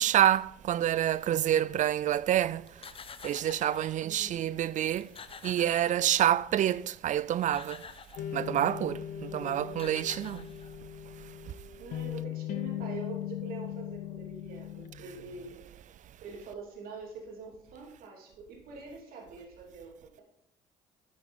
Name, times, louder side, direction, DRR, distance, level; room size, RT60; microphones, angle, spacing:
voice 1, 0.0-2.7 3.2-5.1 5.4-7.9 8.3-10.5 11.5-11.6, right 11 dB, 50° right, 0.4 m, -27 dB
sound 1, 2.7-4.0 4.6-4.7 4.9-6.5 7.2-8.3 9.4-9.5 9.7-11.0, left 6 dB, 35° left, 0.8 m, -48 dB
voice 2, 4.0-4.5 9.2-9.9 11.8-15.6 16.2-20.2, right 4 dB, 70° right, 3.0 m, -45 dB
sound 2, 8.2-15.5, left 12 dB, 60° left, 0.5 m, -39 dB
12.0 x 7.8 x 3.7 m
hypercardioid pair, 65°, 16 cm